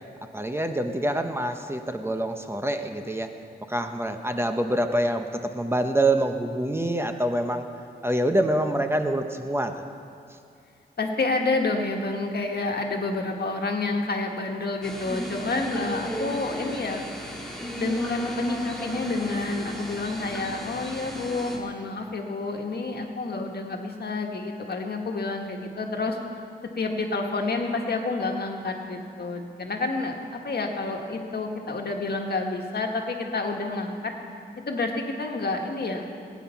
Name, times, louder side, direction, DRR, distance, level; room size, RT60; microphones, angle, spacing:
voice 1, 0.3-3.3 3.7-7.7 8.0-9.7, right 1 dB, 15° right, 6 dB, 0.8 m, -26 dB
voice 2, 11.0-17.1 17.8-26.2 26.8-34.1 34.7-36.1, left 3 dB, 70° left, 2 dB, 1.6 m, -29 dB
sound 1, 14.8-21.6, right 1 dB, 5° left, 2.3 m, -34 dB
20.0 x 9.4 x 5.8 m, 2.4 s
wide cardioid pair, 110°, 17 cm